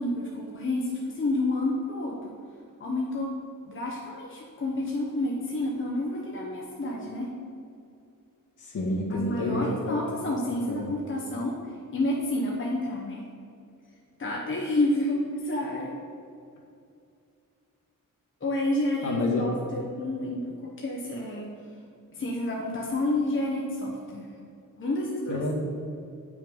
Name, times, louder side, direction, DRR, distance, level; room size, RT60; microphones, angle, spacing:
voice 1, 0.0-2.3 2.8-3.3 3.7-7.3 9.1-13.3 14.2-16.0 18.4-21.5 22.1-24.3 24.7-25.4, left 1 dB, 35° left, -2 dB, 1.1 m, -29 dB
voice 2, 8.6-10.0 10.7-11.0 19.0-19.5 25.3-25.5, left 2 dB, 65° left, -2 dB, 2.0 m, -28 dB
9.0 x 6.1 x 5.4 m, 2.5 s
wide cardioid pair, 150°, 33 cm